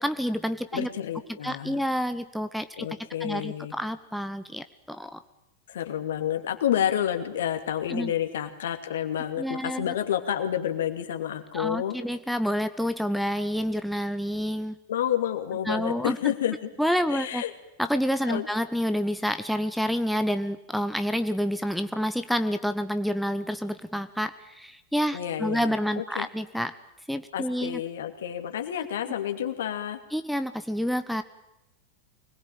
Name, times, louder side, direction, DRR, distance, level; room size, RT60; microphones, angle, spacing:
voice 1, 0.0-0.9 1.4-2.9 3.2-5.2 7.9-8.1 9.4-9.9 11.5-14.8 15.6-16.3 16.8-17.4 17.8-26.7 27.1-27.8 30.1-31.2, equal, ahead, 9 dB, 1.1 m, -28 dB
voice 2, 0.7-1.8 2.8-3.7 5.7-12.0 14.9-16.7 17.1-17.5 18.3-18.5 25.1-26.3 27.3-30.0, left 10 dB, 60° left, 6 dB, 2.7 m, -29 dB
24.5 x 20.5 x 9.0 m, 0.87 s
figure-of-eight pair, 90°, 0 cm